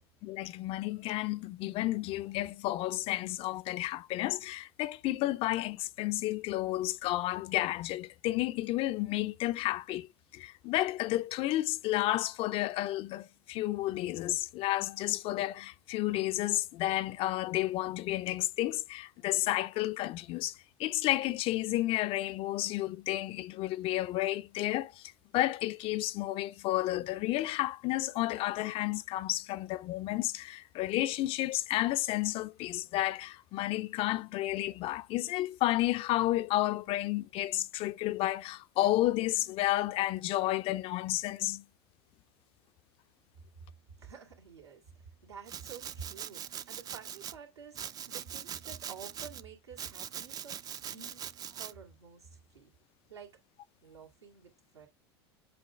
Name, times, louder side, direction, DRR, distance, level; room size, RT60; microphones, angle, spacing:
voice 1, 0.2-41.6, left 16 dB, 45° left, 0.4 m, -31 dB
voice 2, 44.0-52.7 53.1-53.4 53.8-54.9, right 6 dB, 85° right, 2.3 m, -50 dB
Domestic sounds home sounds, 45.5-47.3 47.7-49.4 49.8-51.7, right 9 dB, 30° right, 0.4 m, -42 dB
7.8 x 3.8 x 3.6 m
hypercardioid pair, 85°, 14 cm